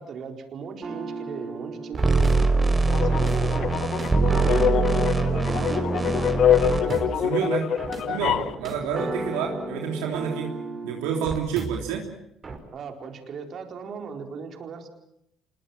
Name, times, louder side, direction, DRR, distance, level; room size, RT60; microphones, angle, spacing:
voice 1, 0.0-2.4 2.9-3.6 4.2-6.4 12.7-14.9, right 5 dB, 55° right, 4 dB, 4.4 m, -37 dB
sound 1, 0.8-12.0 12.4-12.6, right 3 dB, 35° right, 5.4 m, -34 dB
sound 2, 2.0-6.8, right 3 dB, 20° right, 4.9 m, -23 dB
sound 3, 2.9-8.5, left 9 dB, 55° left, 0.9 m, -25 dB
voice 2, 6.9-7.7 8.1-10.5 10.8-12.1, right 7 dB, 80° right, 1 dB, 3.3 m, -29 dB
26.5 x 22.5 x 7.5 m, 0.79 s
hypercardioid pair, 60°, 0 cm